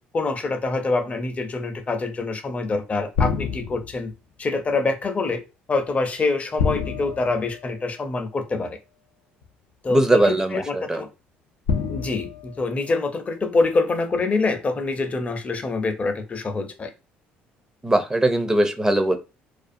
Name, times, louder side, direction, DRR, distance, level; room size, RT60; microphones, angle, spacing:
voice 1, 0.1-4.1 4.4-5.4 5.7-8.8 9.8-11.1 11.9-16.9, left 3 dB, 30° left, 6 dB, 0.6 m, -25 dB
sound 1, 3.2-4.1 6.6-8.2 9.4-9.5 11.7-13.4, left 5 dB, 85° left, 0.4 m, -28 dB
voice 2, 9.9-11.0 17.8-19.2, right 1 dB, 15° right, 8 dB, 0.4 m, -20 dB
2.4 x 2.3 x 2.5 m, 0.29 s
supercardioid pair, 75°, 4 cm